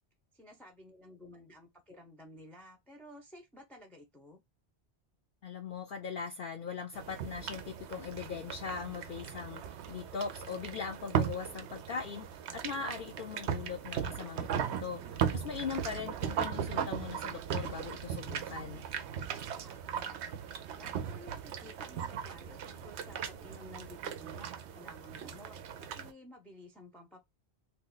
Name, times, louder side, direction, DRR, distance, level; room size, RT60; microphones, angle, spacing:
voice 1, 0.3-4.4 19.6-20.2 20.7-27.2, left 1 dB, ahead, 0.4 m, -53 dB
voice 2, 5.4-18.8, left 6 dB, 60° left, 0.6 m, -40 dB
sound 1, 6.9-26.1, right 8 dB, 90° right, 0.9 m, -38 dB
2.9 x 2.3 x 3.8 m
omnidirectional pair, 1.1 m